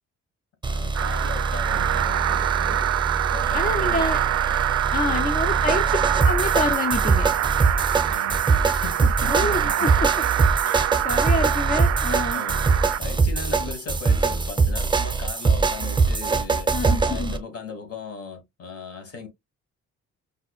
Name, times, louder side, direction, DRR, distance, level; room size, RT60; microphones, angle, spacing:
voice 1, 0.6-2.9 3.3-4.1 5.1-5.3 8.0-9.4 9.6-9.9 12.3-12.7 13.0-19.3, left 4 dB, 50° left, 1.7 m, -38 dB
sound 1, 0.6-17.4, right 4 dB, 15° right, 0.7 m, -23 dB
sound 2, 0.9-13.0, right 13 dB, 55° right, 0.4 m, -25 dB
voice 2, 3.5-4.2 4.9-6.0 6.2-7.3 9.3-12.4 13.6-13.8 16.7-17.3, left 3 dB, 30° left, 0.6 m, -28 dB
5.3 x 2.4 x 2.3 m
cardioid pair, 90°, 30 cm